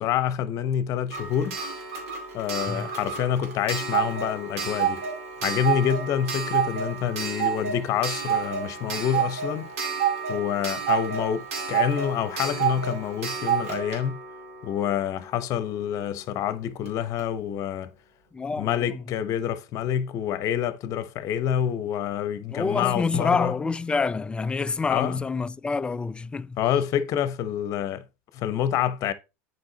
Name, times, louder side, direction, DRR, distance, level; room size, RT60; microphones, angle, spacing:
voice 1, 0.0-1.6 2.3-5.0 5.4-9.7 10.3-14.2 14.6-17.9 18.6-23.5 24.9-25.2 26.6-28.0 28.3-29.1, left 9 dB, 45° left, 0.9 m, -27 dB
Clock, 1.1-15.7 16.9-17.0 17.2-17.3, right 7 dB, 85° right, 2.5 m, -29 dB
voice 2, 18.3-19.0 22.5-26.6, left 4 dB, 15° left, 0.3 m, -27 dB
7.9 x 4.7 x 3.9 m
supercardioid pair, 110°, 8 cm